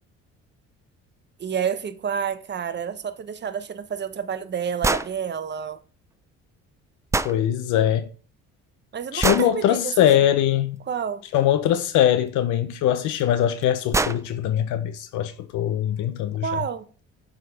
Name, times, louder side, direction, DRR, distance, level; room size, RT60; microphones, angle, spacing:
voice 1, 1.4-5.8 8.9-9.9 10.9-11.2 16.4-16.8, right 7 dB, 35° right, 0.8 m, -29 dB
sound 1, 4.8-5.1 7.1-7.4 9.2-9.5 11.8-11.9 13.2-13.3 13.6-13.7 13.9-14.2, right 3 dB, 10° right, 0.3 m, -23 dB
voice 2, 7.2-8.1 9.1-10.8 11.3-16.5, left 11 dB, 75° left, 0.6 m, -22 dB
7.8 x 3.6 x 5.0 m
cardioid pair, 90°, 30 cm